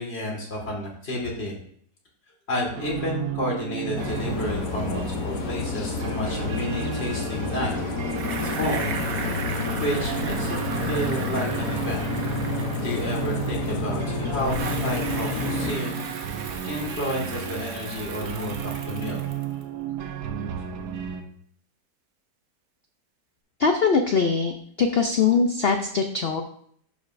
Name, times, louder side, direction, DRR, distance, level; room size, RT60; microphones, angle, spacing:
voice 1, 0.0-1.5 2.5-7.8 8.4-9.0 9.8-12.0 12.8-14.6 14.8-16.1 16.7-19.2, left 1 dB, 40° left, -2 dB, 2.2 m, -30 dB
sound 1, 2.7-21.2, right 8 dB, 80° right, 1.4 m, -33 dB
sound 2, 3.9-15.7, left 5 dB, 60° left, 1.2 m, -30 dB
Bicycle, 8.1-14.0 14.4-19.6, right 5 dB, 60° right, 1.2 m, -36 dB
voice 2, 23.6-24.5 24.8-26.4, left 5 dB, 80° left, 5 dB, 0.5 m, -21 dB
11.0 x 5.2 x 2.6 m, 0.63 s
omnidirectional pair, 1.8 m